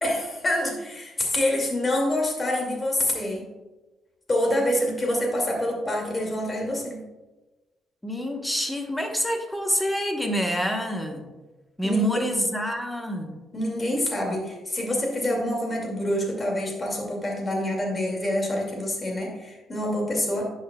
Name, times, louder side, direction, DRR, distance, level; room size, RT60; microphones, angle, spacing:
voice 1, 0.0-3.5 4.3-7.0 11.8-12.2 13.5-20.5, left 1 dB, 30° left, 0 dB, 2.3 m, -26 dB
voice 2, 8.0-11.2 11.8-13.4, equal, 5° left, 3 dB, 1.1 m, -27 dB
10.5 x 5.7 x 2.3 m, 1.1 s
cardioid pair, 90°, 0 cm